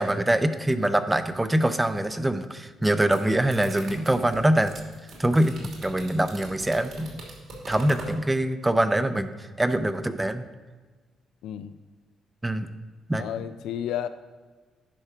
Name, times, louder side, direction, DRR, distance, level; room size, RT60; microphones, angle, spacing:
voice 1, 0.0-4.7 5.2-7.2 7.7-9.3 9.6-10.4 12.4-12.7 13.1-13.3, right 1 dB, 10° right, 11 dB, 0.5 m, -24 dB
sound 1, 2.8-8.2, right 2 dB, 70° right, 2.6 m, -41 dB
voice 2, 11.4-11.7 13.2-14.1, left 10 dB, 85° left, 12 dB, 0.4 m, -31 dB
10.0 x 4.4 x 5.8 m, 1.3 s
cardioid pair, 90°, 0 cm